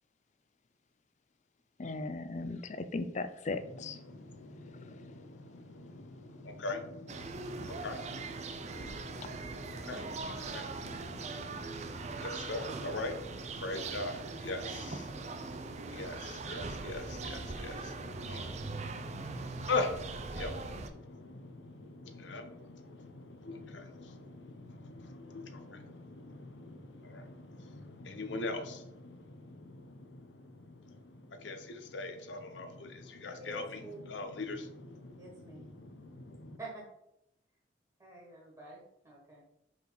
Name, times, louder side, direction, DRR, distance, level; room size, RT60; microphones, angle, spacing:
voice 1, 1.8-4.0, left 3 dB, 40° left, 11 dB, 0.4 m, -37 dB
voice 2, 3.6-36.6, left 3 dB, 85° left, 7 dB, 0.8 m, -42 dB
sound 1, 7.1-20.9, right 3 dB, 40° right, 0.5 m, -41 dB
voice 3, 33.4-34.1 35.2-35.6 36.6-36.8 38.0-39.4, right 1 dB, 15° right, -4 dB, 1.5 m, -47 dB
5.2 x 4.8 x 4.0 m, 0.82 s
head